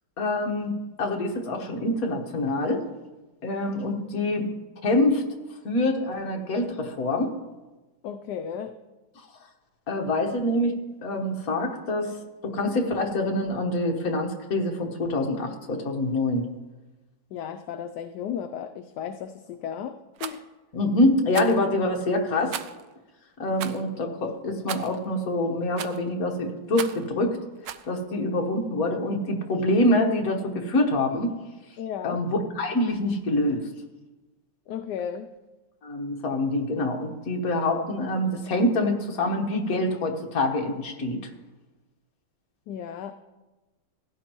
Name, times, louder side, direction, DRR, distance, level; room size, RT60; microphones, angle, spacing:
voice 1, 0.2-2.8 3.4-4.5 4.8-5.2 5.6-7.3 9.9-10.7 11.0-12.1 12.4-16.4 20.7-22.6 23.4-27.4 27.9-31.3 32.0-33.6 35.8-41.2, left 1 dB, 50° left, 1 dB, 1.7 m, -25 dB
voice 2, 8.0-8.8 17.3-20.4 31.8-32.2 34.7-35.3 42.7-43.1, left 8 dB, 75° left, 6 dB, 1.1 m, -34 dB
Rattle, 20.2-20.4 21.3-21.6 22.5-22.9 23.6-23.8 24.7-25.0 25.8-26.1 26.7-27.1 27.7-27.9, right 10 dB, 75° right, 1.2 m, -35 dB
16.5 x 10.5 x 3.0 m, 1.1 s
omnidirectional pair, 2.0 m